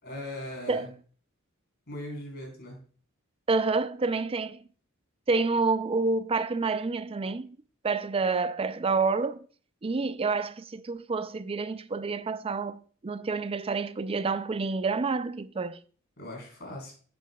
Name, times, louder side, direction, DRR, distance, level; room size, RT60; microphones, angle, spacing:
voice 1, 0.0-0.9 1.9-2.8 16.2-16.9, left 1 dB, 50° left, 4.1 m, -39 dB
voice 2, 3.5-4.6 5.3-7.6 7.8-9.4 9.8-15.8, right 4 dB, 25° right, 0.4 m, -28 dB
10.5 x 8.7 x 2.3 m
head